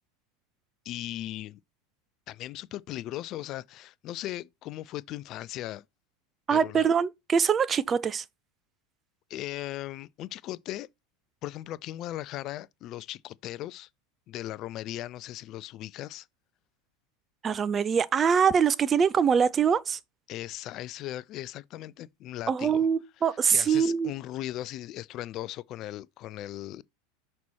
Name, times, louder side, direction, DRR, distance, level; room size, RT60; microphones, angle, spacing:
voice 1, 0.9-1.6 2.3-5.8 6.5-6.9 9.3-10.9 11.4-13.9 14.3-16.3 20.3-22.9 23.5-26.8, left 14 dB, 45° left, 0.4 m, -38 dB
voice 2, 6.5-8.2 17.4-20.0 22.5-24.1, right 7 dB, 30° right, 0.5 m, -24 dB
6.0 x 4.3 x 4.2 m
hypercardioid pair, 90°, 0 cm